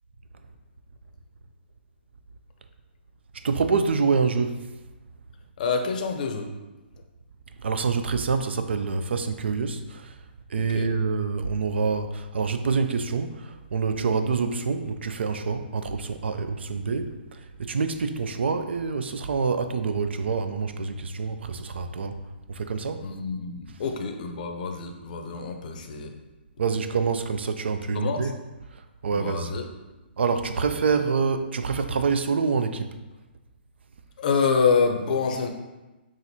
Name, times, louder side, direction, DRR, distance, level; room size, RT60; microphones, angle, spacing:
voice 1, 3.4-4.7 7.6-10.2 10.5-22.2 22.5-23.1 26.6-28.3 28.7-29.5 30.2-33.0, right 5 dB, 80° right, 8 dB, 0.3 m, -26 dB
voice 2, 5.6-6.5 10.7-10.9 23.0-26.1 27.9-28.3 29.1-29.7 34.2-35.5, left 5 dB, 50° left, 5 dB, 0.5 m, -26 dB
5.8 x 2.5 x 2.7 m, 1.1 s
hypercardioid pair, 155°, 6 cm